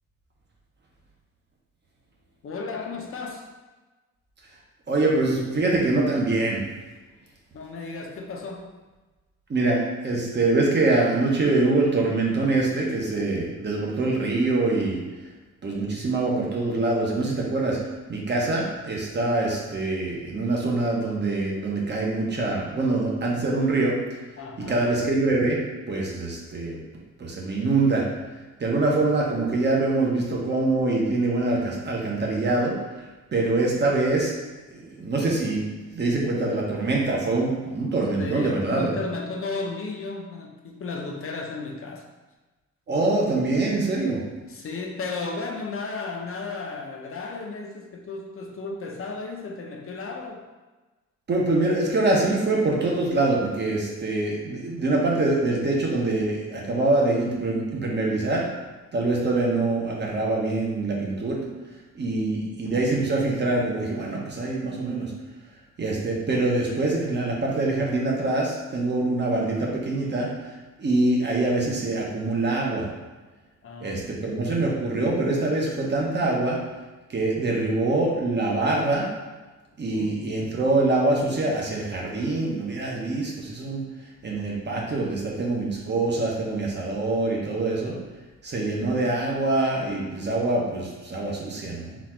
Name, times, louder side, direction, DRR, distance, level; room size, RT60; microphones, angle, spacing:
voice 1, 2.4-3.5 7.5-8.7 24.4-24.9 38.2-42.0 43.9-44.0 44.5-50.5 73.6-74.3 79.9-80.2, left 3 dB, 50° left, 1 dB, 0.6 m, -34 dB
voice 2, 4.9-6.6 9.5-15.0 15.6-17.8 18.1-24.0 24.6-26.8 27.2-28.0 28.6-32.8 33.3-34.3 34.7-39.0 42.9-44.2 51.3-58.4 58.9-61.5 61.9-65.1 65.8-70.3 70.8-72.9 73.8-76.6 77.1-79.1 79.8-83.9 84.2-88.0 88.4-92.0, right 2 dB, 35° right, -2 dB, 0.9 m, -24 dB
4.1 x 2.4 x 4.3 m, 1.2 s
wide cardioid pair, 145°, 29 cm